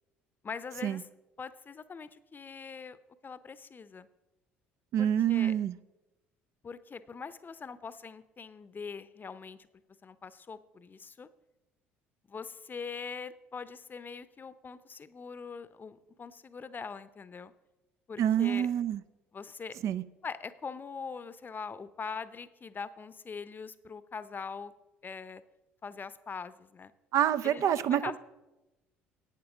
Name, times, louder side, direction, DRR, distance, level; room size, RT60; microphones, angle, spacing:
voice 1, 0.4-1.1 1.4-4.1 5.0-5.5 6.6-9.7 10.0-11.3 12.3-17.5 18.1-18.7 19.3-19.8 20.2-24.7 25.0-25.4 25.8-26.9 27.4-28.2, left 5 dB, 30° left, 15 dB, 0.7 m, -42 dB
voice 2, 4.9-5.7 18.2-19.0 19.8-20.0 27.1-28.2, right 10 dB, 55° right, 13 dB, 0.5 m, -27 dB
11.0 x 8.7 x 5.0 m, 1.0 s
hypercardioid pair, 60°, 6 cm